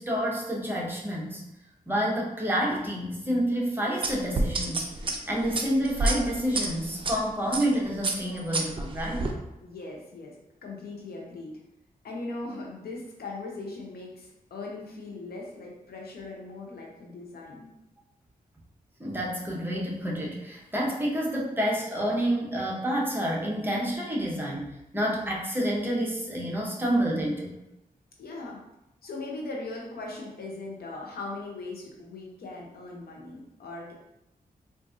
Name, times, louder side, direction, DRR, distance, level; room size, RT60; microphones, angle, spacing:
voice 1, 0.0-1.4 1.9-4.9 5.3-9.3 19.0-27.5, equal, 15° right, -3 dB, 0.8 m, -28 dB
sound 1, 4.0-7.1 7.5-7.7 8.0-9.3, right 2 dB, 35° right, 0.5 m, -28 dB
voice 2, 9.6-10.4 10.6-11.6 12.0-17.7 28.2-28.6 29.0-33.9, left 2 dB, 80° left, -1 dB, 0.8 m, -39 dB
3.9 x 2.5 x 2.6 m, 0.89 s
cardioid pair, 85°, 16 cm